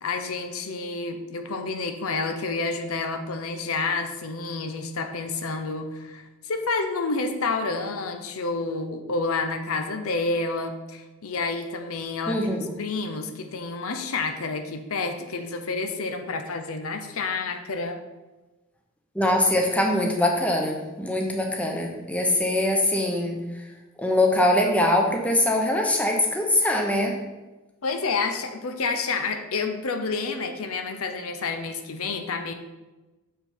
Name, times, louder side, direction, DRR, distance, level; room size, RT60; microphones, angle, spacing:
voice 1, 0.0-18.0 27.8-32.5, left 3 dB, 70° left, 6 dB, 0.7 m, -29 dB
voice 2, 12.3-12.7 19.1-23.4 24.0-27.2, left 1 dB, 5° left, 1 dB, 0.9 m, -23 dB
7.0 x 5.1 x 4.4 m, 1.1 s
head